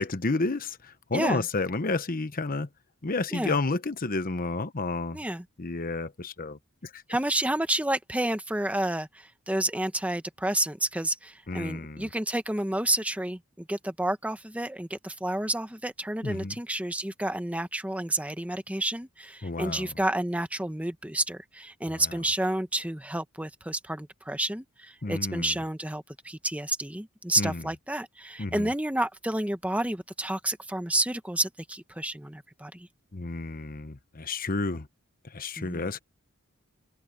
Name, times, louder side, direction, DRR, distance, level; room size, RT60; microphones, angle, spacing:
voice 1, 0.0-2.7 3.0-5.2 5.6-7.0 11.5-12.1 16.2-16.5 19.4-19.9 21.9-22.2 25.0-25.6 27.4-27.6 28.4-28.7 33.1-34.9 35.2-36.0, left 3 dB, 40° left, 1.0 m, -31 dB
voice 2, 1.1-1.4 3.3-3.6 5.1-5.4 7.1-32.9 35.6-35.9, right 1 dB, 5° right, 1.1 m, -30 dB
head